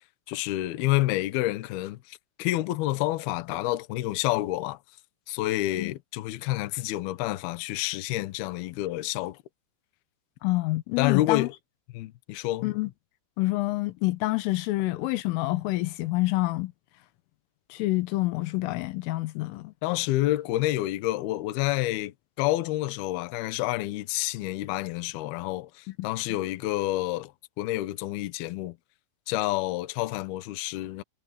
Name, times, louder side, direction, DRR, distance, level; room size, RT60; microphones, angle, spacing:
voice 1, 0.3-4.8 5.3-9.4 11.0-11.5 11.9-12.7 19.8-27.3 27.6-28.8 29.3-31.0, left 16 dB, 70° left, 2.5 m, -28 dB
voice 2, 10.4-11.5 12.6-12.9 13.4-16.7 17.7-19.7 26.0-26.1, left 20 dB, 90° left, 3.6 m, -27 dB
omnidirectional pair, 5.6 m